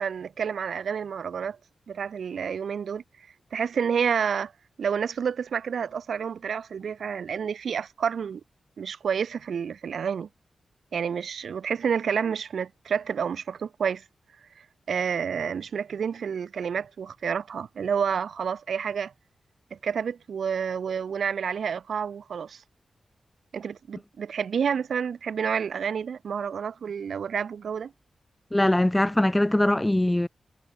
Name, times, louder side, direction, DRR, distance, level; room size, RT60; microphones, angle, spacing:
voice 1, 0.0-1.6 1.9-3.0 3.5-4.5 4.8-8.4 8.8-10.3 10.9-14.0 14.9-19.1 19.7-22.6 23.5-27.9, right 7 dB, 80° right, 3.7 m, -29 dB
voice 2, 28.5-30.3, left 1 dB, 10° left, 4.7 m, -22 dB
wide cardioid pair, 95°, 0 cm